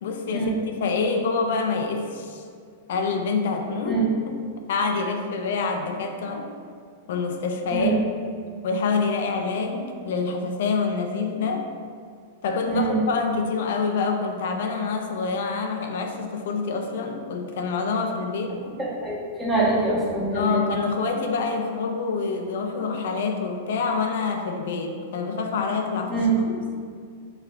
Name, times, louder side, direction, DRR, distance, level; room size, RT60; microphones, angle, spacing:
voice 1, 0.0-2.4 2.9-4.0 4.3-4.4 4.7-6.5 7.1-7.9 8.6-11.7 12.4-18.6 20.3-26.6, left 4 dB, 70° left, 3 dB, 0.5 m, -26 dB
voice 2, 12.6-13.0 18.8-20.7 26.1-26.4, right 3 dB, 10° right, -7 dB, 1.3 m, -24 dB
4.8 x 3.2 x 3.4 m, 2.2 s
hypercardioid pair, 135°, 0 cm